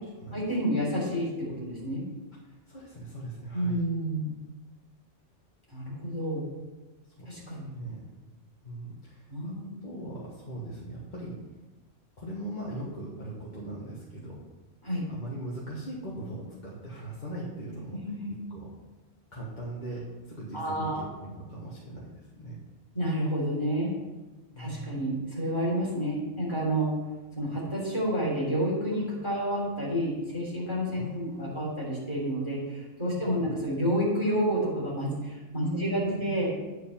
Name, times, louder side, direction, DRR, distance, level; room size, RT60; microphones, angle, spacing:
voice 1, 0.3-2.1 3.5-4.3 5.7-6.4 7.3-7.7 9.3-9.7 14.8-15.1 17.9-18.4 20.5-21.1 22.9-23.9 24.6-26.9 27.4-36.5, equal, 20° left, -6 dB, 3.4 m, -29 dB
voice 2, 2.5-3.8 7.2-8.0 8.6-9.5 9.8-11.4 12.2-14.4 15.1-18.0 18.5-18.7 19.3-22.6 24.5-25.0 31.0-31.5 33.1-33.5 35.6-36.3, right 1 dB, 40° left, -6 dB, 1.6 m, -39 dB
9.5 x 4.8 x 5.6 m, 1.2 s
omnidirectional pair, 1.3 m